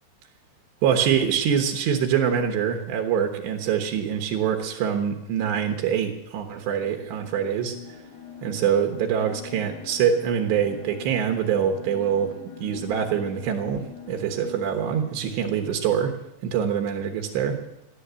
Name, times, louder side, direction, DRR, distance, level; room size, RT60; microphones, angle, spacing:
voice 1, 0.8-7.7 8.4-12.3 12.6-16.1 16.4-17.6, right 8 dB, 75° right, 3 dB, 3.3 m, -24 dB
sound 1, 6.5-15.7, left 6 dB, 55° left, 3.9 m, -44 dB
15.0 x 11.0 x 8.1 m, 0.89 s
omnidirectional pair, 5.2 m